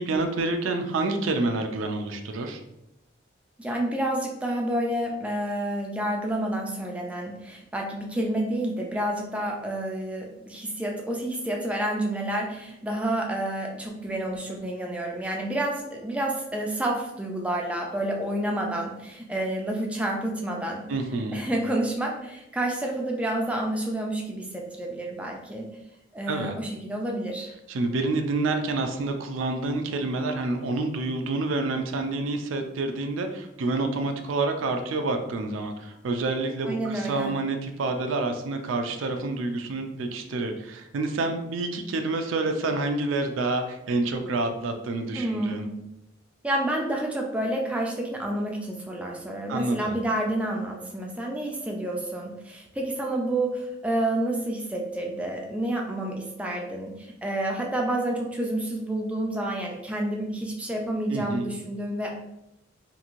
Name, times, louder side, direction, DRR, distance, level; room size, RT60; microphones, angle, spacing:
voice 1, 0.0-2.6 20.9-21.4 26.3-26.5 27.7-45.7 49.5-50.0 61.1-61.5, right 2 dB, 80° right, 6 dB, 0.4 m, -28 dB
voice 2, 3.6-20.9 21.3-25.7 26.1-27.5 36.7-37.3 45.1-45.7 46.4-62.1, right 1 dB, 5° right, 0 dB, 0.3 m, -29 dB
2.9 x 2.6 x 2.5 m, 0.86 s
head